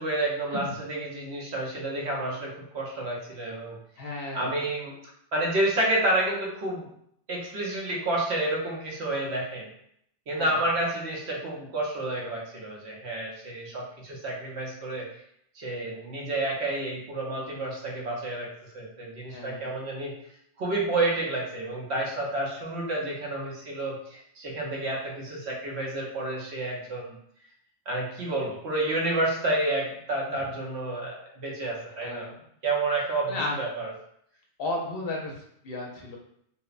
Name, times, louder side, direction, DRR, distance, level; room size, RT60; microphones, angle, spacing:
voice 1, 0.0-3.8 4.3-5.0 5.3-6.9 7.3-9.7 10.3-15.1 15.5-18.5 18.7-20.1 20.6-27.2 27.9-32.3 32.6-33.9, right 2 dB, 70° right, -2 dB, 0.9 m, -30 dB
voice 2, 4.0-4.6 10.3-10.6 19.3-19.8 32.0-32.4 33.3-33.5 34.6-36.2, left 2 dB, 65° left, -1 dB, 0.7 m, -34 dB
2.8 x 2.0 x 2.3 m, 0.71 s
omnidirectional pair, 1.2 m